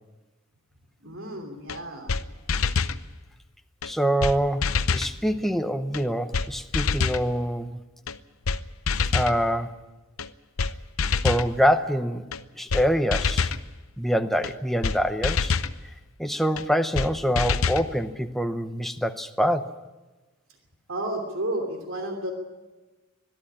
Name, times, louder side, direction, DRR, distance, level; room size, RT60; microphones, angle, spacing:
voice 1, 1.0-2.2 20.9-22.3, right 1 dB, 70° right, 4 dB, 2.9 m, -32 dB
sound 1, 1.7-1.8 2.1-2.2 2.5-3.0 3.8-3.9 4.2-4.4 4.6-5.1 5.9-6.0 6.3-6.5 6.7-7.2 8.1-8.2 8.5-8.6 8.9-9.4 10.2-10.3 10.6-10.7 11.0-11.5 12.3-12.4 12.7-12.8 13.1-13.6 14.4-14.5 14.8-15.0 15.2-15.7 16.6-16.7 17.0-17.1 17.4-17.9, left 5 dB, 80° left, 0.8 m, -25 dB
voice 2, 3.8-7.8 9.1-9.8 11.2-12.2 12.6-13.5 14.0-15.5 16.2-19.7, equal, ahead, 7 dB, 0.8 m, -25 dB
21.5 x 13.0 x 9.9 m, 1.2 s
head